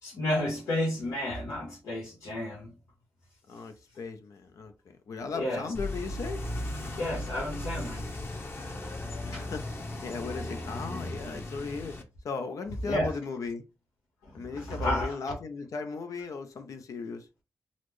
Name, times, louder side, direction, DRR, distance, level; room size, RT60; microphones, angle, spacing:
voice 1, 0.0-2.7 5.3-5.7 7.0-8.0 9.3-9.5 12.9-13.1 14.2-15.1, left 1 dB, 90° left, 1.0 m, -31 dB
voice 2, 3.5-4.7 5.1-6.4 9.2-9.6 10.0-12.0 12.2-13.6 14.3-17.3, left 4 dB, 70° left, 0.6 m, -37 dB
sound 1, 5.7-12.0, left 1 dB, 40° left, 1.0 m, -36 dB
4.0 x 2.0 x 3.1 m
cardioid pair, 55°, 6 cm